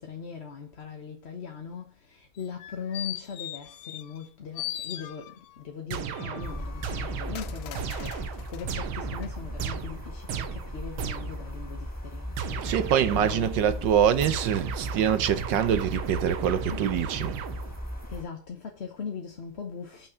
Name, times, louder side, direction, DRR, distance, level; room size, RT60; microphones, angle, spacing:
voice 1, 0.0-12.7 13.1-13.9 16.7-16.8 18.1-20.1, left 6 dB, 40° left, 1.1 m, -40 dB
sound 1, 2.4-4.3 4.6-5.6 6.1-8.7 9.2-9.3, left 13 dB, 80° left, 1.4 m, -40 dB
sound 2, 5.9-11.5 12.4-13.7 14.2-17.9, right 8 dB, 85° right, 1.8 m, -36 dB
sound 3, 6.4-18.2, equal, 5° left, 3.3 m, -37 dB
voice 2, 12.6-17.4, right 9 dB, 65° right, 1.5 m, -25 dB
6.1 x 6.1 x 6.9 m
omnidirectional pair, 2.2 m